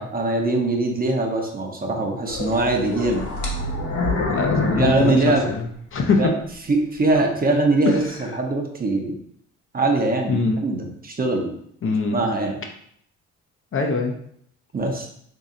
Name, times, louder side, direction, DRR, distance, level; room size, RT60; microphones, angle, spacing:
voice 1, 0.0-3.3 4.8-5.5 6.2-6.3 6.7-9.2 9.7-11.5 12.1-12.6 14.7-15.1, right 2 dB, 30° right, 2 dB, 0.7 m, -22 dB
sound 1, 2.3-6.0 6.5-6.6 7.2-7.3, left 2 dB, 70° left, 1.1 m, -26 dB
voice 2, 4.3-5.1 5.5-5.7 5.9-6.3 7.1-7.2 7.9-8.0 10.3-10.6 11.8-12.2 13.7-14.1, left 4 dB, 45° left, 2 dB, 0.6 m, -22 dB
3.1 x 2.8 x 3.7 m, 0.68 s
cardioid pair, 90°, 30 cm